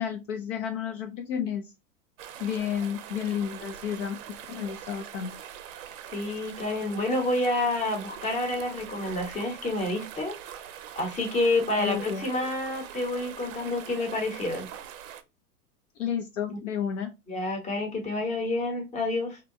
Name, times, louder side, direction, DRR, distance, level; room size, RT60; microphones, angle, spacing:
voice 1, 0.0-1.6 2.4-4.2 4.5-5.3 11.8-12.3 16.0-17.1, left 8 dB, 55° left, 0.5 m, -31 dB
sound 1, 2.2-15.2, right 10 dB, 60° right, 0.6 m, -43 dB
voice 2, 6.1-10.3 11.0-14.7 16.5-16.6 17.3-19.4, left 2 dB, 15° left, 0.8 m, -28 dB
2.7 x 2.2 x 2.5 m
hypercardioid pair, 110°, 46 cm